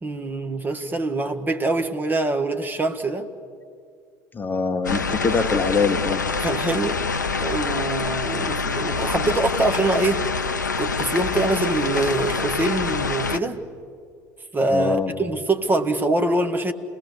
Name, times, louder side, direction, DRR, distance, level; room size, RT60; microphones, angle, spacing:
voice 1, 0.0-3.3 6.4-7.0 7.4-10.3 10.8-13.6 14.5-16.7, right 2 dB, 20° right, 1.6 m, -24 dB
voice 2, 4.3-6.2 14.7-15.1, left 5 dB, 20° left, 1.1 m, -23 dB
sound 1, 4.8-13.4, left 4 dB, 80° left, 0.6 m, -26 dB
29.5 x 20.0 x 7.0 m
figure-of-eight pair, 65°, 10 cm